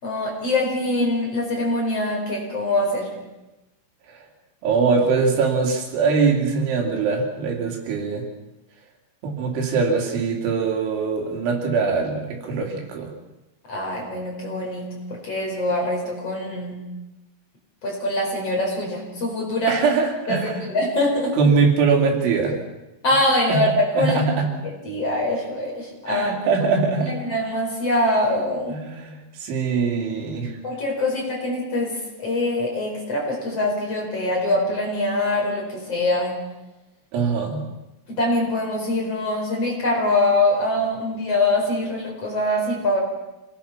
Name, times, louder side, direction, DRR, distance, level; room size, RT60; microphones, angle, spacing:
voice 1, 0.0-3.1 13.7-16.8 17.8-19.8 20.3-21.4 23.0-24.2 24.6-26.3 27.0-28.7 30.6-36.4 38.1-43.0, left 1 dB, 35° left, -1 dB, 5.1 m, -23 dB
voice 2, 4.6-8.2 9.2-13.1 19.7-20.7 21.3-22.6 23.5-23.7 24.0-24.6 26.1-27.2 28.7-30.6 37.1-37.7, right 5 dB, 75° right, 1 dB, 5.2 m, -22 dB
26.5 x 19.0 x 5.8 m, 1.0 s
omnidirectional pair, 5.4 m